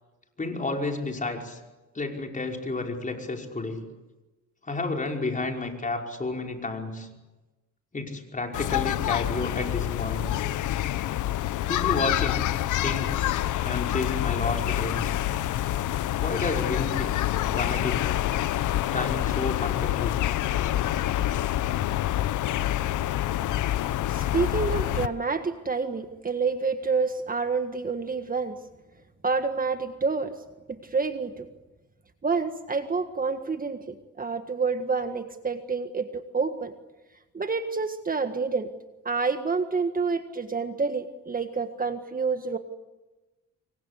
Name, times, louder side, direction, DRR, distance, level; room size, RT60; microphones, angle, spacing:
voice 1, 0.4-1.6 2.0-3.8 4.6-7.1 7.9-10.3 11.7-12.4 12.8-13.2 13.6-15.2 16.2-18.2 18.9-20.2, left 3 dB, 25° left, 2 dB, 5.3 m, -31 dB
sound 1, 8.5-25.1, left 13 dB, 80° left, 1.0 m, -27 dB
voice 2, 24.1-28.6 29.2-30.3 30.7-31.5 32.2-36.7 37.3-38.7 39.0-42.6, right 4 dB, 30° right, 8 dB, 1.6 m, -28 dB
27.0 x 23.5 x 8.4 m, 1.1 s
cardioid pair, 90°, 30 cm